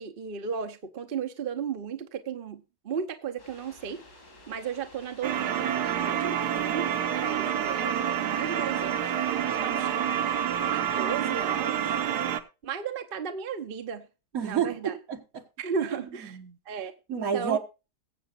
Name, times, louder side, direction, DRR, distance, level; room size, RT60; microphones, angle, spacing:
voice 1, 0.0-4.0 4.5-9.1 9.6-9.9 10.7-12.0 12.6-14.1 14.4-15.0 15.6-16.4 16.7-17.6, right 7 dB, 40° right, 0.9 m, -35 dB
sound 1, 3.4-11.1, left 2 dB, 90° left, 5.9 m, -52 dB
sound 2, 5.2-12.4, right 9 dB, 75° right, 1.5 m, -28 dB
voice 2, 14.3-15.4 16.3-16.6 17.1-17.6, right 8 dB, 60° right, 1.9 m, -29 dB
21.0 x 7.8 x 2.5 m
omnidirectional pair, 1.7 m